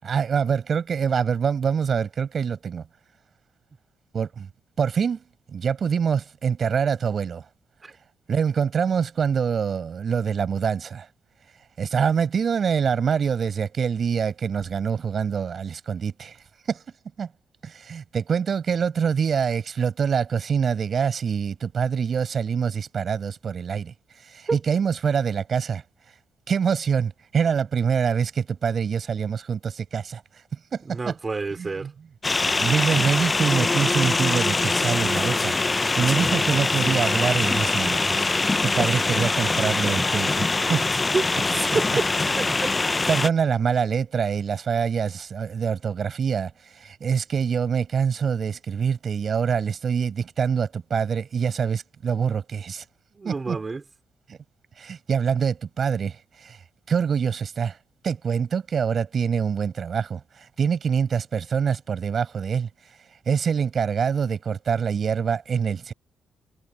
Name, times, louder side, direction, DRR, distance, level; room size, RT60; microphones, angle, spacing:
voice 1, 0.0-2.8 4.1-4.5 4.8-5.2 5.5-7.4 8.3-11.1 11.8-16.4 16.7-16.8 17.2-17.3 17.6-25.8 26.5-30.4 30.7-31.1 31.6-31.9 32.6-38.3 38.6-40.9 43.1-52.8 53.2-53.6 54.3-54.4 54.8-56.6 56.9-57.8 58.0-62.7 63.3-65.9, right 6 dB, 50° right, 7.0 m, -25 dB
voice 2, 30.8-31.9 40.7-40.9 41.1-41.9 42.4-42.7 53.1-53.8, right 4 dB, 30° right, 2.7 m, -29 dB
sound 1, 32.2-43.3, left 3 dB, 25° left, 0.4 m, -23 dB
cardioid pair, 90°, 0 cm